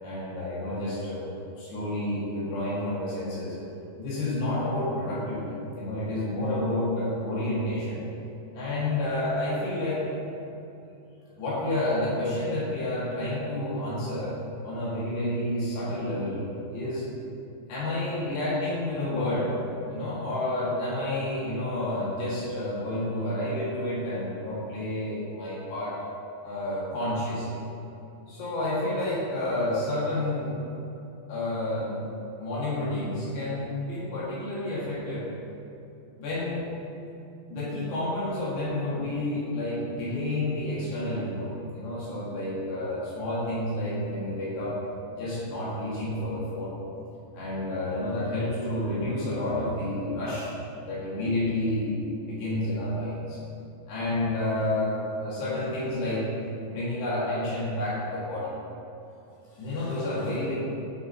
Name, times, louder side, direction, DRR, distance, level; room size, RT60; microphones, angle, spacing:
voice 1, 0.0-1.2 1.6-3.6 4.0-8.0 8.5-10.0 11.3-14.4 14.6-16.5 16.7-17.1 17.7-19.6 19.9-26.0 26.4-27.6 28.3-30.5 31.3-32.1 32.4-35.3 36.2-36.7 37.5-44.8 45.1-46.8 47.3-50.5 50.8-53.4 53.9-56.3 56.6-58.5 59.5-60.5, left 1 dB, 70° left, -9 dB, 4.0 m, -30 dB
11.5 x 4.8 x 5.6 m, 2.8 s
omnidirectional pair, 5.1 m